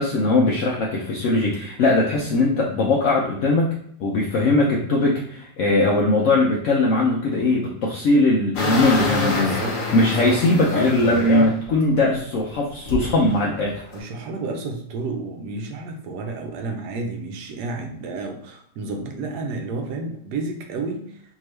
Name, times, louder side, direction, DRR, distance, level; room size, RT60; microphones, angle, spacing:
voice 1, 0.0-3.7 4.0-9.6 9.9-13.8, left 2 dB, 75° left, -3 dB, 0.7 m, -20 dB
sound 1, 8.6-11.7 12.1-12.2 12.9-14.0, left 2 dB, 55° left, 1.1 m, -26 dB
voice 2, 9.5-10.4 13.9-21.2, right 3 dB, 70° right, 3 dB, 1.2 m, -31 dB
3.7 x 2.8 x 3.1 m, 0.67 s
omnidirectional pair, 1.9 m